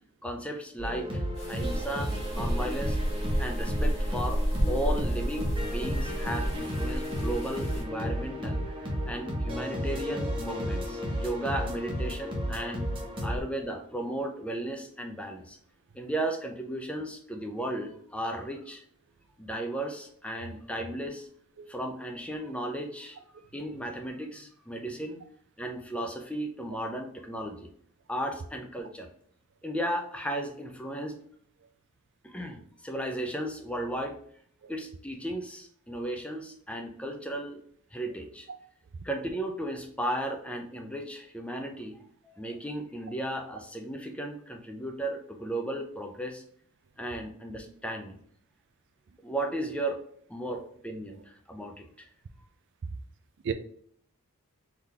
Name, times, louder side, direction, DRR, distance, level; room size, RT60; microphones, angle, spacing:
voice 1, 0.2-3.0 3.4-12.9 13.2-15.6 15.9-18.8 19.4-21.3 21.7-23.2 23.5-25.2 25.6-27.7 28.1-29.1 29.6-31.2 32.2-34.2 34.7-37.6 37.9-38.5 39.0-42.0 42.2-46.4 47.0-48.2 49.2-50.0 50.3-52.1, right 1 dB, 5° left, 0.5 m, -35 dB
sound 1, 0.8-13.4, equal, 20° right, 0.9 m, -33 dB
sound 2, 1.3-7.8, equal, 30° left, 1.6 m, -32 dB
voice 2, 20.4-20.5 21.6-21.7 34.6-34.7 38.5-38.6 41.6-41.7 50.5-50.6 53.4-53.5, right 7 dB, 55° right, 0.4 m, -35 dB
3.8 x 3.4 x 2.8 m
head